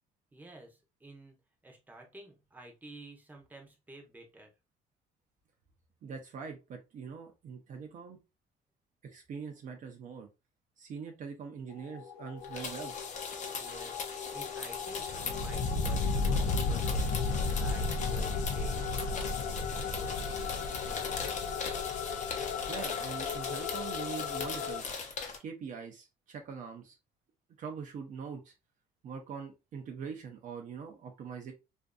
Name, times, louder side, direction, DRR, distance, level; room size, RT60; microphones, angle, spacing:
voice 1, 0.3-1.4 1.6-4.5 13.6-14.0 14.3-21.4, right 1 dB, 10° right, 2 dB, 0.7 m, -51 dB
voice 2, 6.0-8.2 9.1-10.3 10.8-12.9 22.7-24.9 25.4-27.0 27.6-28.5 29.0-31.5, right 6 dB, 50° right, 4 dB, 0.5 m, -43 dB
sound 1, 11.7-24.8, left 4 dB, 85° left, 0.4 m, -34 dB
sound 2, 12.4-25.4, left 5 dB, 45° left, 0.7 m, -40 dB
2.5 x 2.5 x 2.2 m, 0.26 s
cardioid pair, 110°, 17 cm